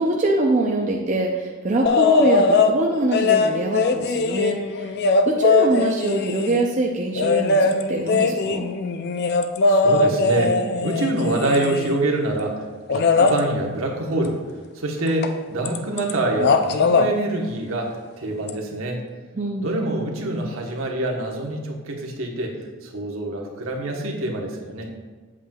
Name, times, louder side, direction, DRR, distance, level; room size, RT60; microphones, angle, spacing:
voice 1, 0.0-4.9 5.3-8.7 19.4-19.7, right 2 dB, 35° right, -1 dB, 0.5 m, -23 dB
sound 1, 1.9-2.8 3.1-6.7 7.2-12.0 12.9-13.4 15.2-15.4 15.7-16.1 16.4-17.1 18.5-18.6, left 4 dB, 45° left, 0.4 m, -20 dB
voice 2, 9.6-14.4 14.7-19.0 19.6-22.5 22.8-24.9, right 1 dB, 70° right, 0 dB, 1.1 m, -26 dB
8.2 x 7.4 x 2.3 m, 1.4 s
head